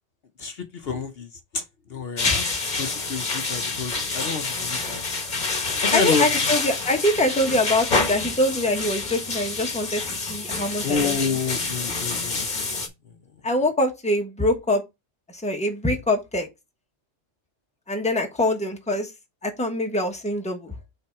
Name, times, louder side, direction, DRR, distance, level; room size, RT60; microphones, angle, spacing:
voice 1, 0.4-1.6 1.9-5.0 5.8-6.3 10.8-12.9, left 5 dB, 60° left, 0.9 m, -29 dB
sound 1, 2.2-12.9, left 3 dB, 40° left, 1.2 m, -27 dB
voice 2, 2.2-2.7 5.9-10.0 10.3-11.3 13.4-14.8 15.3-16.5 17.9-19.1 19.4-20.7, left 1 dB, 5° left, 1.0 m, -24 dB
5.7 x 3.8 x 4.6 m
omnidirectional pair, 1.2 m